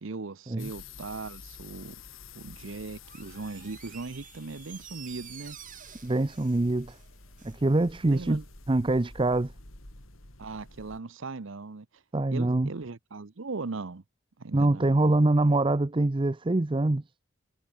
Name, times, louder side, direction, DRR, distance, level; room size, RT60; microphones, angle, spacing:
voice 1, 0.0-2.0 2.3-5.6 8.0-8.4 10.4-11.9 12.3-14.0 14.4-15.1, right 3 dB, 65° right, 0.8 m, -38 dB
sound 1, 0.6-11.0, left 4 dB, 75° left, 4.8 m, -49 dB
Door, 3.0-7.6 7.9-8.0, right 10 dB, 40° right, 1.9 m, -49 dB
voice 2, 6.0-6.9 7.4-8.4 8.7-9.5 12.1-12.7 14.5-17.0, right 2 dB, 25° right, 0.6 m, -24 dB
head